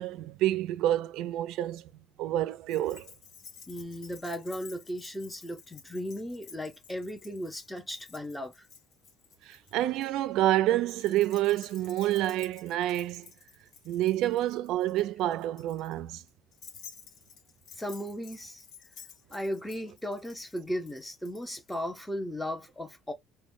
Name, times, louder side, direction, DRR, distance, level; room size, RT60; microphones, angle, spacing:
voice 1, 0.0-1.9 2.2-3.1 9.4-13.3 13.9-16.2, right 14 dB, 70° right, 0.3 m, -28 dB
Keys jangling, 2.7-10.1 10.8-21.8, left 6 dB, 60° left, 1.3 m, -53 dB
voice 2, 3.7-8.7 17.8-18.6 19.3-23.1, equal, 5° left, 0.7 m, -36 dB
3.1 x 2.2 x 2.6 m
cardioid pair, 135°, 0 cm